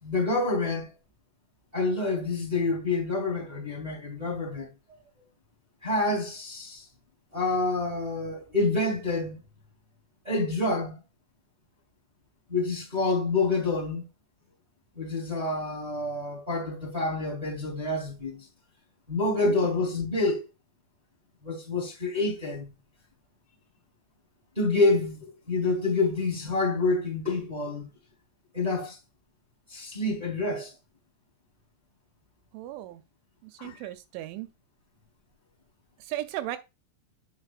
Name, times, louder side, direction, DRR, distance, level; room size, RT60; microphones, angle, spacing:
voice 1, 0.0-0.9 1.7-4.7 5.8-6.8 7.3-9.4 10.2-11.0 12.5-14.0 14.9-18.4 19.1-20.4 21.4-22.7 24.5-27.9 28.5-29.0 29.7-30.7 33.6-33.8, left 3 dB, 15° right, 1.7 m, -27 dB
voice 2, 32.5-33.0 33.4-34.5 36.0-36.6, right 15 dB, 85° right, 3.0 m, -36 dB
8.2 x 6.3 x 2.5 m
omnidirectional pair, 5.4 m